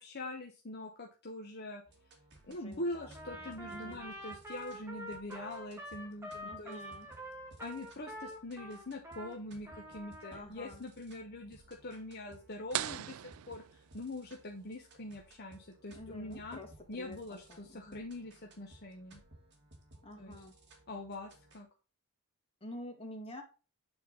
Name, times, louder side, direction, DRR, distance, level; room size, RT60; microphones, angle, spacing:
voice 1, 0.0-1.8 2.4-6.8 7.6-16.6 16.9-19.2 20.2-20.4 20.9-21.7, left 2 dB, 45° left, 1 dB, 1.0 m, -43 dB
sound 1, 1.9-21.6, right 1 dB, 50° right, 2.5 m, -59 dB
voice 2, 2.5-4.1 6.4-7.1 10.3-10.8 15.9-17.2 17.5-18.0 20.0-20.6 22.6-23.4, left 1 dB, 25° left, 1 dB, 2.2 m, -48 dB
Trumpet, 3.1-9.4 9.6-10.4, equal, 10° right, 1.8 m, -46 dB
sound 2, 12.7-14.4, right 13 dB, 65° right, 0.3 m, -40 dB
8.9 x 4.2 x 5.2 m, 0.33 s
head